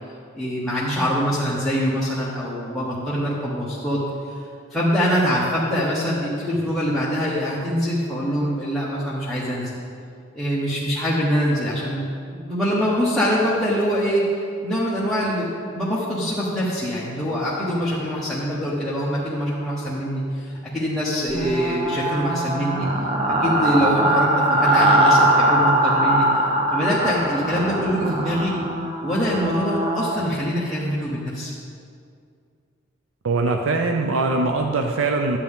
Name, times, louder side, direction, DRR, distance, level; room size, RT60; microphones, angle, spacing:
voice 1, 0.3-4.0 4.3-4.4 4.7-9.7 10.3-12.1 12.4-15.5 15.7-22.9 23.3-26.3 26.7-28.6 29.0-31.5, equal, ahead, -10 dB, 1.2 m, -24 dB
sound 1, 21.3-30.2, right 1 dB, 30° right, 0.9 m, -21 dB
voice 2, 33.2-35.4, right 3 dB, 75° right, 4 dB, 0.6 m, -22 dB
11.5 x 8.5 x 3.6 m, 2.3 s
head